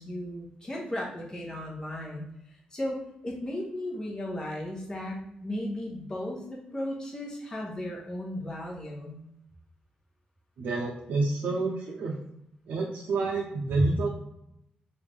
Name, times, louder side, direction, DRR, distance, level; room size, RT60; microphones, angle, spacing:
voice 1, 0.0-2.3 2.7-3.0 3.2-9.2, left 1 dB, 25° left, -2 dB, 1.1 m, -35 dB
voice 2, 10.6-12.2 12.7-14.1, right 3 dB, 80° right, -2 dB, 0.6 m, -28 dB
3.2 x 2.6 x 3.5 m, 0.78 s
cardioid pair, 100°, 3 cm